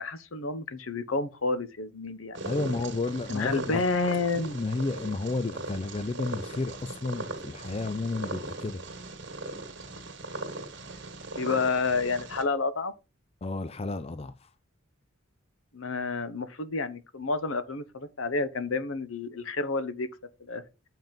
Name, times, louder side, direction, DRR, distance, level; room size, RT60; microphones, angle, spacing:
voice 1, 0.0-2.7 3.3-4.6 11.3-12.9 15.7-20.1 20.5-20.6, left 3 dB, 80° left, 1.0 m, -30 dB
Purr, 2.3-12.4, right 2 dB, 60° right, 1.9 m, -39 dB
voice 2, 2.4-3.8 4.3-8.8 13.4-14.5, left 3 dB, 30° left, 0.4 m, -32 dB
7.4 x 5.6 x 5.3 m
head